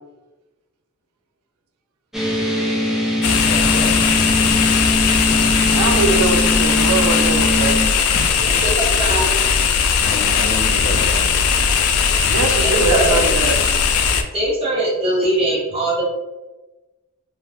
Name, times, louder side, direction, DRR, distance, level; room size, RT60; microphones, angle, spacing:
sound 1, 2.1-7.9, left 1 dB, ahead, 0.4 m, -21 dB
sound 2, 3.2-14.2, left 6 dB, 85° left, 0.3 m, -18 dB
voice 1, 3.3-4.5 5.5-5.6 8.3-8.7 10.0-11.4, left 1 dB, 50° left, -3 dB, 0.8 m, -30 dB
voice 2, 5.7-7.8 12.3-13.6, right 3 dB, 75° right, 4 dB, 0.4 m, -21 dB
voice 3, 8.6-9.3 12.6-13.2 14.3-16.0, right 1 dB, 25° right, -5 dB, 0.9 m, -21 dB
2.3 x 2.3 x 3.3 m, 1.1 s
head